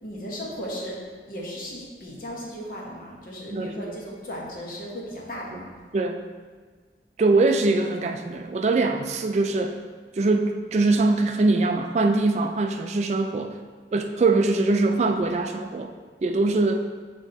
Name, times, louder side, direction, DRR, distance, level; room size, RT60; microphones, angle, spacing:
voice 1, 0.0-5.7, equal, 50° left, -3 dB, 1.2 m, -36 dB
voice 2, 7.2-9.8 10.2-13.5 13.9-15.9 16.2-16.8, right 3 dB, 40° right, 5 dB, 0.3 m, -22 dB
7.3 x 3.6 x 4.0 m, 1.5 s
head